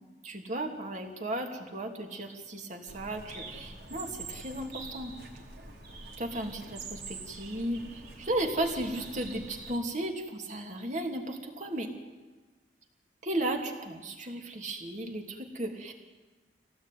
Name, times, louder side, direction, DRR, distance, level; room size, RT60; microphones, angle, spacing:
voice 1, 0.2-5.1 6.2-11.9 13.2-15.9, right 1 dB, 40° right, 2 dB, 2.9 m, -35 dB
Bird, 2.9-9.8, right 3 dB, 60° right, 4.1 m, -45 dB
26.0 x 18.0 x 9.4 m, 1.3 s
head